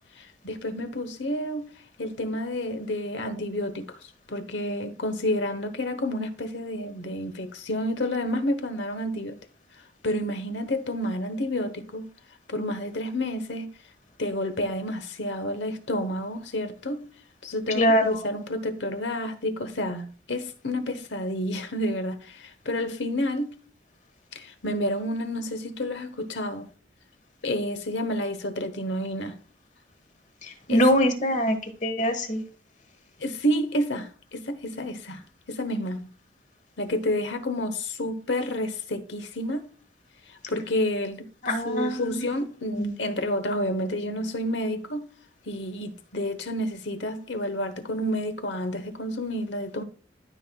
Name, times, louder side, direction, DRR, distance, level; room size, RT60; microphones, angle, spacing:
voice 1, 0.2-1.7 2.0-4.0 4.3-9.4 10.0-12.1 12.5-13.7 14.2-17.1 17.4-23.6 24.3-26.7 27.4-29.4 30.7-30.8 33.2-36.1 36.8-39.7 40.3-45.1 45.5-49.8, left 1 dB, 75° left, 1.0 m, -30 dB
voice 2, 17.7-18.2 30.4-31.6 31.8-32.4 41.4-42.4 42.8-42.9, equal, 40° left, 1.3 m, -23 dB
13.0 x 5.8 x 2.3 m
head